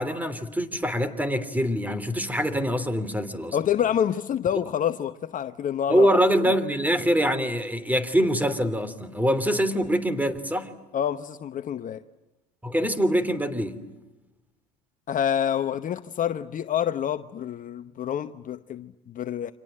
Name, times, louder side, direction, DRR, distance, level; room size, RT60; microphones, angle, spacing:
voice 1, 0.0-3.6 5.9-10.7 12.6-13.8, equal, 10° right, 3.2 m, -24 dB
voice 2, 3.5-6.1 10.9-12.0 15.1-19.5, left 9 dB, 40° left, 1.0 m, -27 dB
29.5 x 26.0 x 7.6 m
hypercardioid pair, 80°, 21 cm